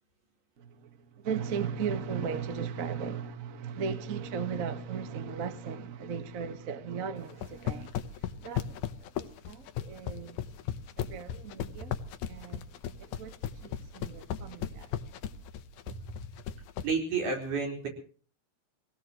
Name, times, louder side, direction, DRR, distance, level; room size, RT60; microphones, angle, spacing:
voice 1, 0.6-8.9 9.2-10.4 11.0-12.0 12.3-12.7 13.0-14.9, right 6 dB, 90° right, 0.7 m, -37 dB
sound 1, 7.3-16.9, left 10 dB, 70° left, 2.2 m, -35 dB
voice 2, 16.8-17.9, right 4 dB, 60° right, 5.8 m, -31 dB
24.0 x 18.0 x 3.0 m
omnidirectional pair, 4.1 m